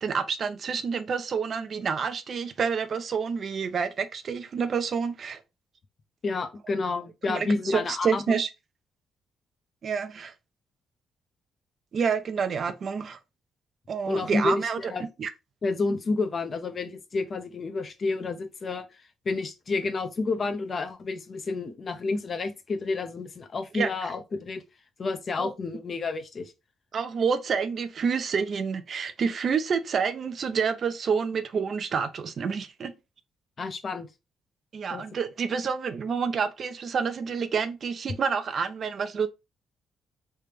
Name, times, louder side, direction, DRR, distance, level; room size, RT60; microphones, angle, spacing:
voice 1, 0.0-5.4 7.3-8.5 9.8-10.3 11.9-13.2 13.9-14.9 15.2-15.3 23.7-24.1 25.4-25.5 26.9-32.9 34.7-39.3, right 6 dB, 50° right, 0.5 m, -28 dB
voice 2, 6.2-8.2 14.1-15.0 15.6-18.8 19.3-24.6 25.0-26.5 33.6-34.1 34.9-35.0, left 3 dB, 40° left, 0.6 m, -30 dB
3.3 x 2.8 x 3.3 m
cardioid pair, 120°, 0 cm